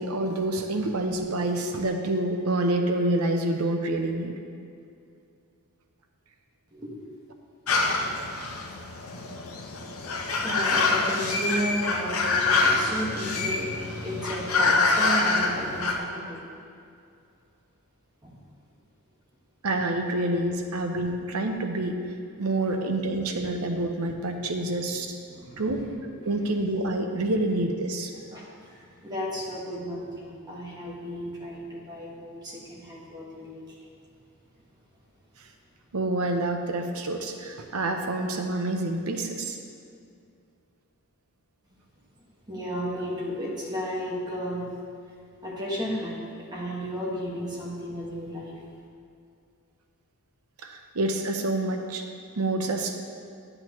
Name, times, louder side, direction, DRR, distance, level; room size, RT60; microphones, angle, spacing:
voice 1, 0.0-4.3 19.6-22.0 22.4-25.1 25.6-25.8 26.2-28.1 35.9-39.6 50.6-52.0 52.4-53.0, right 2 dB, 75° right, 4 dB, 0.8 m, -27 dB
sound 1, 7.7-16.0, left 3 dB, 65° left, 0.7 m, -26 dB
voice 2, 10.4-16.4 18.2-18.3 25.3-25.7 28.3-33.6 42.5-44.7 45.4-48.5, equal, 20° right, -5 dB, 1.6 m, -33 dB
10.0 x 7.8 x 3.1 m, 2.4 s
head